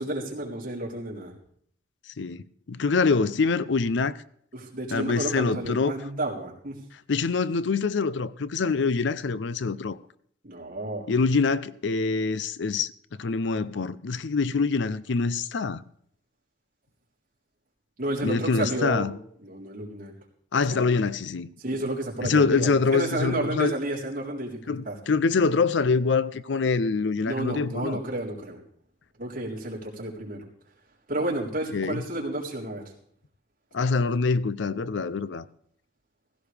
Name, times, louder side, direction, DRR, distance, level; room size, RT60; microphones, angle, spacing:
voice 1, 0.0-1.3 4.5-6.8 10.4-11.1 18.0-19.2 19.4-20.1 20.7-20.8 21.6-25.0 27.3-28.6 29.2-30.5 31.1-32.8, right 1 dB, 50° right, 3.9 m, -31 dB
voice 2, 2.7-4.2 4.9-5.9 7.1-10.0 11.1-12.9 13.2-15.8 18.2-19.1 20.5-21.5 22.2-23.7 24.7-28.0 31.7-32.0 33.7-35.4, left 4 dB, 70° left, 0.5 m, -25 dB
17.0 x 16.0 x 3.4 m
head